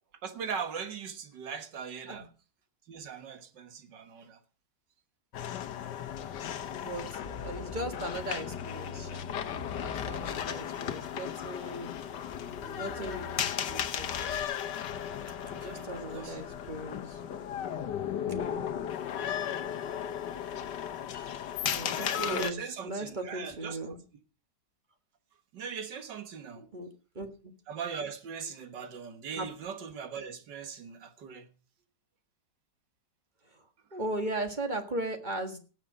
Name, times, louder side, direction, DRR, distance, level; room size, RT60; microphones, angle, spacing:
voice 1, 0.2-2.3 2.9-4.4 15.4-16.4 22.0-24.0 25.5-26.7 27.7-31.5, right 6 dB, 90° right, 2.1 m, -40 dB
sound 1, 5.3-22.5, left 9 dB, 80° left, 1.6 m, -35 dB
voice 2, 6.6-9.3 9.7-11.9 12.8-14.3 15.5-17.2 18.3-18.6 21.7-24.0 26.6-26.9 27.1-27.5 29.3-29.5 33.4-35.6, right 1 dB, 25° right, 1.8 m, -38 dB
Bass guitar, 7.2-10.8 11.4-12.0 12.3-14.4, left 3 dB, 35° left, 2.3 m, -45 dB
18.5 x 7.5 x 5.0 m
omnidirectional pair, 1.8 m